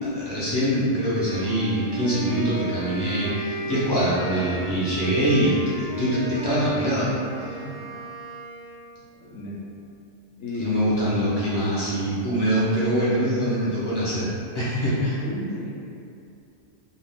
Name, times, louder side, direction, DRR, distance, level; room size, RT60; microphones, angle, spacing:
voice 1, 0.0-7.1 7.4-7.6 10.6-15.2, equal, 25° left, -10 dB, 0.6 m, -24 dB
Wind instrument woodwind instrument, 1.0-8.9, right 2 dB, 80° right, 0.9 m, -35 dB
voice 2, 9.1-9.6 10.4-10.9 15.2-15.7, left 1 dB, 90° left, -5 dB, 1.0 m, -33 dB
2.5 x 2.3 x 3.4 m, 2.6 s
omnidirectional pair, 1.3 m